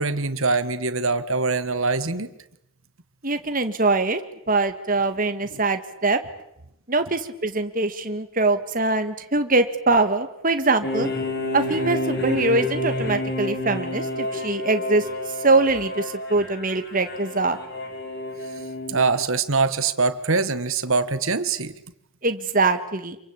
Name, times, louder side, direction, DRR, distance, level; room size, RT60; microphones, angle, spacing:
voice 1, 0.0-2.3 5.5-5.6 18.9-21.8, right 4 dB, 70° right, 12 dB, 1.8 m, -23 dB
voice 2, 3.2-4.2 4.5-6.2 6.9-11.1 11.5-15.1 15.4-17.6 22.2-23.2, right 3 dB, 40° right, 8 dB, 1.9 m, -23 dB
sound 1, 10.8-19.2, left 1 dB, 45° left, 5.8 m, -29 dB
27.5 x 24.5 x 8.7 m, 0.80 s
head